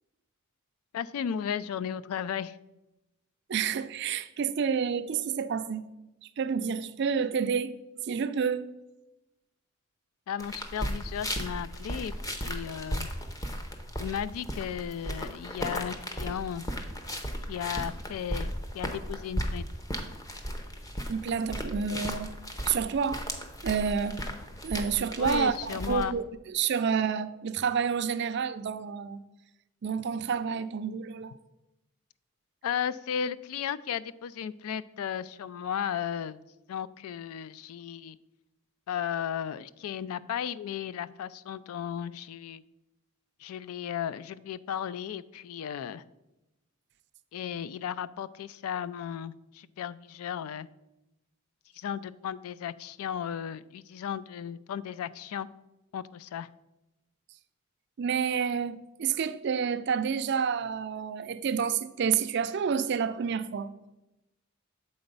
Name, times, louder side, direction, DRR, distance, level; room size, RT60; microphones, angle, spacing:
voice 1, 0.9-2.6 10.3-12.1 12.4-13.1 14.0-16.6 17.5-19.6 25.2-26.1 32.6-36.4 36.7-38.2 38.9-42.6 43.4-46.0 47.3-50.7 51.7-55.5 55.9-56.5, left 8 dB, 80° left, 0.3 m, -35 dB
voice 2, 3.5-5.9 6.4-7.7 8.0-8.7 21.1-22.3 22.7-23.2 23.6-24.3 24.6-29.2 29.8-31.3 58.0-63.7, right 6 dB, 50° right, 0.4 m, -29 dB
sound 1, 10.4-26.0, equal, 15° left, 0.6 m, -36 dB
7.8 x 4.0 x 5.2 m
head